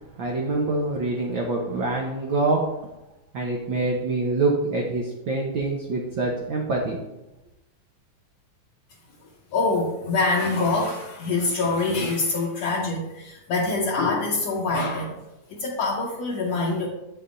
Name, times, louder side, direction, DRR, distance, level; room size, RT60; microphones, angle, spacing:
voice 1, 0.2-2.6 3.3-7.0, right 2 dB, 85° right, -1 dB, 1.0 m, -25 dB
voice 2, 9.5-15.2 15.5-16.9, left 3 dB, 70° left, -3 dB, 1.8 m, -25 dB
8.4 x 6.9 x 2.5 m, 0.95 s
omnidirectional pair, 3.4 m